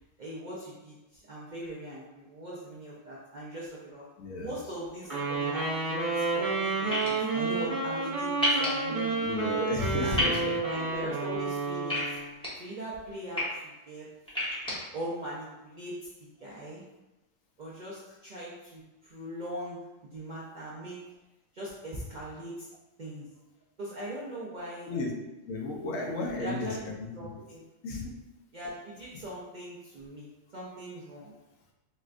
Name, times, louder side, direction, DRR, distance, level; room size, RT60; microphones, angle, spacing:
voice 1, 0.2-4.1 4.4-9.1 10.0-12.2 12.6-14.1 14.9-15.9 16.2-16.8 17.6-19.8 20.1-21.0 21.5-22.7 23.0-23.2 23.8-24.9 25.8-27.6 28.5-30.3 30.5-31.3, right 1 dB, 55° right, -7 dB, 0.5 m, -40 dB
voice 2, 4.2-4.5 9.2-10.2 24.9-25.1 25.5-26.7 27.8-28.1, left 2 dB, 80° left, 0 dB, 1.0 m, -33 dB
Wind instrument woodwind instrument, 5.0-12.3, right 3 dB, 40° right, 1.2 m, -30 dB
sound 1, 6.9-7.1 8.4-8.7 10.2-10.4 11.9-12.5 13.1-13.4 14.3-14.7, left 1 dB, 5° left, 0.8 m, -28 dB
4.1 x 2.2 x 2.4 m, 1.0 s
omnidirectional pair, 1.4 m